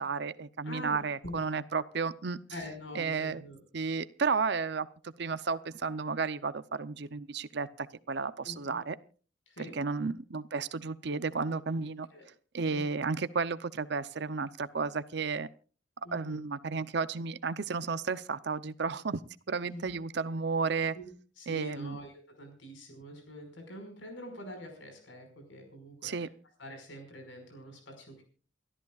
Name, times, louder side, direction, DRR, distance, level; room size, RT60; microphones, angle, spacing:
voice 1, 0.0-2.4 2.9-3.4 3.7-4.9 5.2-9.0 9.6-12.1 12.5-15.5 16.1-19.2 19.5-20.9 21.5-22.0 26.0-26.3, right 4 dB, 60° right, 14 dB, 0.7 m, -33 dB
voice 2, 0.6-1.5 2.5-3.6 8.4-8.8 9.5-9.7 12.1-12.2 12.7-12.8 16.0-16.4 19.6-19.9 20.9-26.3 26.6-28.2, left 1 dB, 90° left, 4 dB, 5.5 m, -45 dB
29.0 x 13.5 x 2.4 m, 0.38 s
head